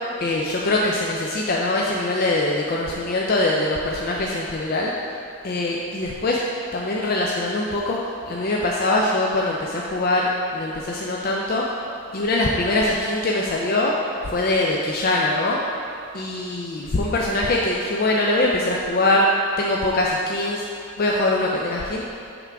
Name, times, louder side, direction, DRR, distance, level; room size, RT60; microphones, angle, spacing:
voice 1, 0.2-4.9 5.4-8.0 8.3-11.6 12.1-13.9 14.3-15.6 16.1-19.3 19.6-20.6 21.0-22.0, left 2 dB, 40° left, -2 dB, 0.4 m, -22 dB
5.8 x 3.5 x 5.6 m, 2.5 s
head